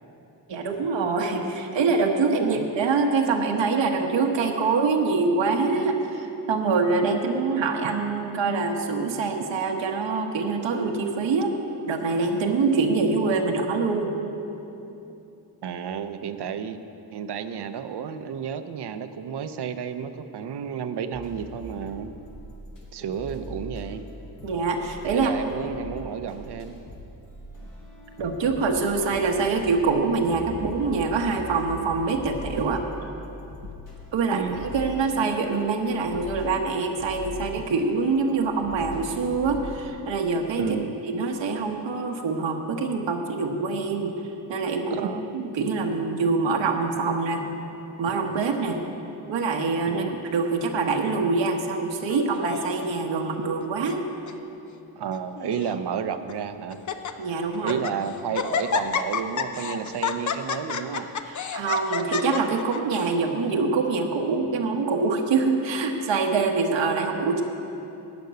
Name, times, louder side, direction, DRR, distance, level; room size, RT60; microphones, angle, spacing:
voice 1, 0.5-11.5 11.9-14.1 24.4-25.3 28.2-32.8 34.1-40.6 41.1-47.4 48.0-48.8 49.3-50.0 50.3-54.0 57.2-57.8 61.3-67.4, right 4 dB, 90° right, 2 dB, 1.2 m, -25 dB
voice 2, 15.6-16.8 17.1-22.1 22.9-24.0 25.1-26.8 34.3-34.6 40.6-41.0 44.9-45.3 49.9-50.1 55.0-56.8 57.6-61.1, right 7 dB, 65° right, 10 dB, 0.7 m, -31 dB
sound 1, 21.1-22.8 23.1-39.8, left 2 dB, 70° left, 3.2 m, -41 dB
Laughter, 52.1-52.9 53.6-54.0 54.3-54.4 55.1-55.7 56.3-56.4 56.7-57.1 57.5-58.0 58.3-63.1, left 6 dB, 45° left, 0.6 m, -30 dB
13.5 x 5.3 x 9.4 m, 2.9 s
cardioid pair, 110°, 43 cm